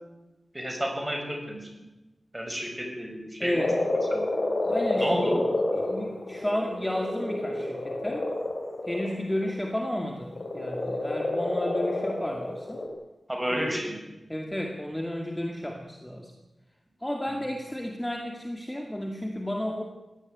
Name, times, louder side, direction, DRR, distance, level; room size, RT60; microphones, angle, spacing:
voice 1, 0.5-1.8 2.3-3.5 4.1-4.4 5.0-5.5 13.3-14.1, equal, 10° right, 3 dB, 6.5 m, -31 dB
voice 2, 3.4-3.7 4.6-5.3 5.7-8.3 8.9-12.8 13.5-13.6 14.3-16.3 17.0-19.8, left 1 dB, 10° left, 3 dB, 2.3 m, -32 dB
Frog, 3.6-9.5 10.3-12.9, left 2 dB, 45° left, 4.8 m, -29 dB
21.0 x 18.0 x 9.4 m, 1.0 s
wide cardioid pair, 110°, 0 cm